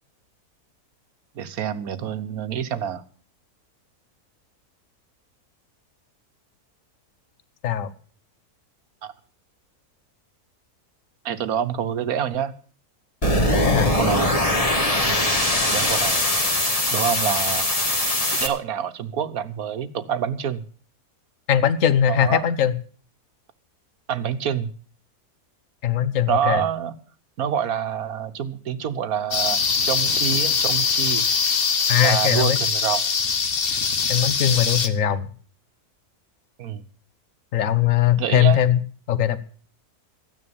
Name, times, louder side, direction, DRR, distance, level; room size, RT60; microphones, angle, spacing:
voice 1, 1.3-3.0 9.0-9.1 11.2-12.5 13.9-14.4 15.1-16.2 16.9-17.7 18.4-20.6 22.1-22.5 24.1-24.7 26.3-26.9 27.4-31.2 32.0-33.0 36.6-36.8 38.2-38.6, right 8 dB, 70° right, 12 dB, 1.4 m, -27 dB
sound 1, 13.2-18.5, left 1 dB, 25° left, 1.8 m, -21 dB
voice 2, 13.4-13.9 21.5-22.8 25.8-26.6 31.9-32.6 34.1-35.3 37.5-38.8 39.1-39.4, left 10 dB, 60° left, 15 dB, 1.3 m, -20 dB
sound 2, 29.3-34.9, left 5 dB, 40° left, 1.1 m, -22 dB
14.0 x 9.7 x 7.0 m, 0.43 s
omnidirectional pair, 1.6 m